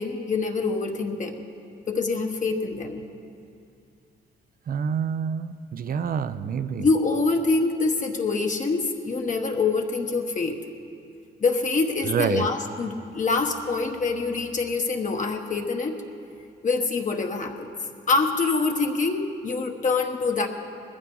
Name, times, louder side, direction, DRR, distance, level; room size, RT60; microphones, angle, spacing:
voice 1, 0.0-1.5 1.9-3.0 6.8-10.6 11.4-15.9 16.6-17.7 18.1-20.5, left 3 dB, 40° left, 3 dB, 1.2 m, -25 dB
voice 2, 4.7-6.9 12.1-12.5, right 7 dB, 45° right, 13 dB, 0.6 m, -27 dB
20.0 x 15.0 x 3.9 m, 2.5 s
cardioid pair, 90°, 20 cm